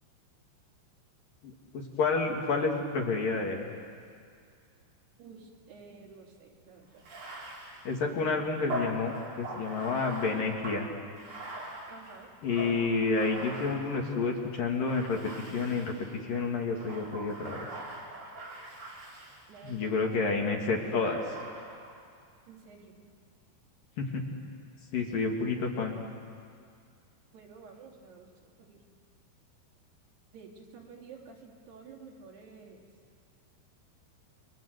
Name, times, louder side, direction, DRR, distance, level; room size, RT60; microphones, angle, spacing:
voice 1, 1.4-3.7 7.8-10.9 12.4-17.7 19.6-21.2 24.0-24.2 24.9-26.0, left 4 dB, 55° left, 1 dB, 3.4 m, -30 dB
voice 2, 5.2-7.0 11.9-12.3 19.5-20.3 22.5-23.1 27.3-28.3 28.7-28.8 30.3-32.8, right 5 dB, 65° right, 0 dB, 4.9 m, -51 dB
Bathtub (filling or washing), 7.0-14.3 14.9-16.2 16.7-19.9 21.1-22.0, right 2 dB, 45° right, 5.4 m, -42 dB
29.5 x 25.0 x 8.0 m, 2.2 s
omnidirectional pair, 5.2 m